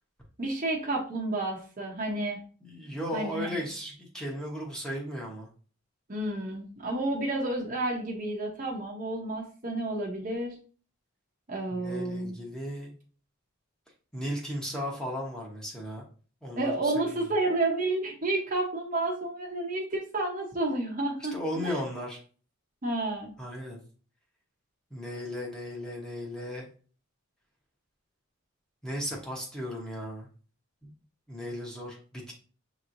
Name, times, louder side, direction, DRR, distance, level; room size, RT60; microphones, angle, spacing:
voice 1, 0.4-2.4 3.1-3.6 6.1-10.6 11.5-12.3 16.6-21.8 22.8-23.3, right 2 dB, 40° right, 0 dB, 0.8 m, -30 dB
voice 2, 2.6-5.5 11.7-12.9 14.1-16.0 16.4-17.3 21.3-22.2 23.4-23.8 24.9-26.7 28.8-30.3 30.8-30.9 31.3-32.3, equal, 5° left, -3 dB, 1.0 m, -36 dB
6.6 x 3.0 x 2.6 m, 0.40 s
head